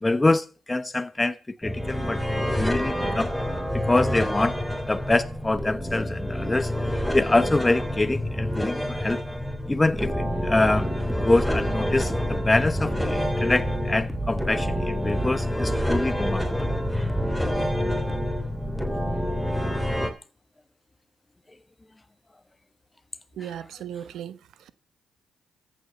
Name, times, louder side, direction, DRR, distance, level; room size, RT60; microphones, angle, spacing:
voice 1, 0.0-3.3 3.7-4.6 4.9-6.7 7.1-9.2 9.7-16.7 23.4-23.5, left 2 dB, 20° left, 1.0 m, -25 dB
sound 1, 1.6-20.1, left 1 dB, ahead, 3.3 m, -27 dB
sound 2, 9.8-18.4, right 2 dB, 20° right, 2.3 m, -37 dB
voice 2, 23.3-24.7, right 10 dB, 70° right, 1.1 m, -37 dB
14.0 x 7.6 x 6.8 m
supercardioid pair, 60°, 0 cm